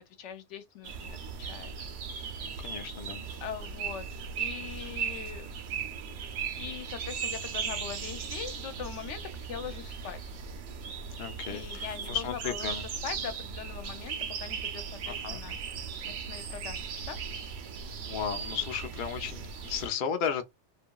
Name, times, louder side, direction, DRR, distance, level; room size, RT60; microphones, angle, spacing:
voice 1, 0.0-1.9 2.2-2.5 3.4-4.1 4.4-5.5 6.5-10.2 11.4-12.8 13.0-17.2, left 8 dB, 85° left, 0.9 m, -42 dB
sound 1, 0.8-19.9, right 6 dB, 90° right, 0.9 m, -37 dB
voice 2, 2.5-3.3 11.2-12.8 15.1-15.4 18.0-20.4, left 7 dB, 60° left, 0.6 m, -34 dB
2.8 x 2.5 x 2.2 m
omnidirectional pair, 1.2 m